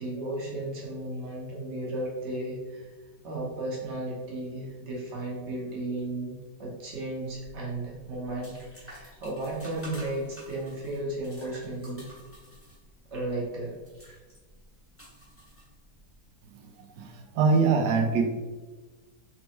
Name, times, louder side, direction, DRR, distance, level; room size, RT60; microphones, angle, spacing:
voice 1, 0.0-2.9 3.2-12.1 13.1-13.8, right 2 dB, 45° right, -4 dB, 1.2 m, -34 dB
sound 1, 7.4-16.1, equal, 10° left, 1.0 m, -50 dB
voice 2, 16.6-18.3, right 4 dB, 80° right, 5 dB, 1.2 m, -24 dB
4.2 x 3.3 x 3.0 m, 1.3 s
omnidirectional pair, 1.8 m